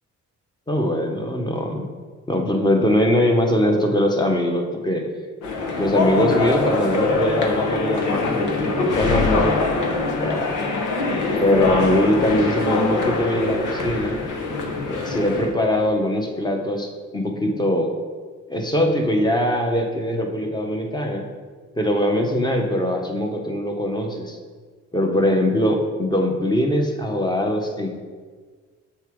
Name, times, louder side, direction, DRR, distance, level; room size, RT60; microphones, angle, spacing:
voice 1, 0.7-1.8 2.3-5.1 5.7-9.6 10.2-10.5 11.4-14.2 14.9-17.9 18.5-21.2 21.8-24.4 24.9-27.9, left 1 dB, 15° left, 2 dB, 1.2 m, -22 dB
sound 1, 5.4-15.6, left 3 dB, 85° left, 1.2 m, -23 dB
7.1 x 7.0 x 3.8 m, 1.5 s
cardioid pair, 90°, 30 cm